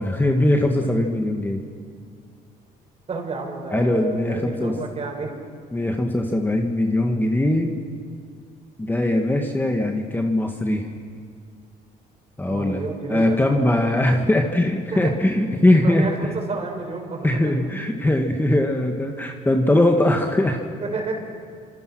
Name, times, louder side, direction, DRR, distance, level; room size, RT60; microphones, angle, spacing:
voice 1, 0.0-1.6 3.7-4.7 5.7-7.7 8.8-10.9 12.4-16.1 17.2-20.6, left 1 dB, 10° left, 3 dB, 1.8 m, -21 dB
voice 2, 3.1-5.3 12.5-13.8 14.1-14.4 14.9-15.1 15.7-17.5 20.8-21.1, right 3 dB, 40° right, 2 dB, 5.8 m, -31 dB
28.5 x 26.5 x 6.3 m, 2.1 s
cardioid pair, 110°, 17 cm